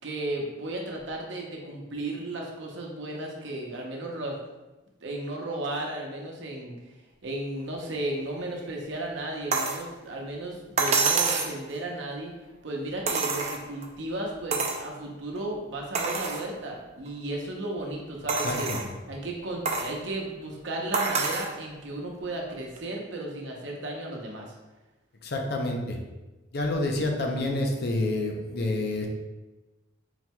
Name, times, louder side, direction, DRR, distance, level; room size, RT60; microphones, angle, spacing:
voice 1, 0.0-4.4 5.0-6.7 7.2-12.3 12.6-18.7 19.1-24.5, right 1 dB, 65° right, 0 dB, 0.8 m, -34 dB
sound 1, 9.5-9.8 10.8-11.6 13.1-13.9 14.5-14.8 15.4-15.5 15.9-16.4 17.1-17.2 18.3-18.9 19.7-19.9 20.9-21.5 22.8-22.9, right 4 dB, 35° right, 0.4 m, -27 dB
voice 2, 18.4-18.8 25.2-26.0 26.5-29.1, left 2 dB, 55° left, 2 dB, 0.6 m, -28 dB
4.4 x 3.9 x 2.2 m, 1.1 s
head